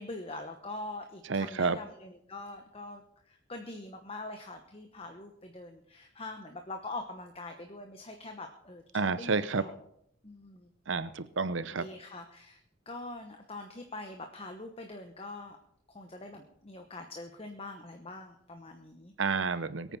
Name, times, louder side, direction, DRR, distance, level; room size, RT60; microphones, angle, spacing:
voice 1, 0.0-9.8 10.2-10.7 11.7-12.6 12.9-15.6 15.9-19.1, left 2 dB, 30° left, 5 dB, 1.0 m, -44 dB
voice 2, 1.3-1.8 8.9-9.6 10.9-11.9 19.2-20.0, right 4 dB, 70° right, 14 dB, 0.8 m, -30 dB
22.0 x 9.1 x 4.2 m, 0.71 s
head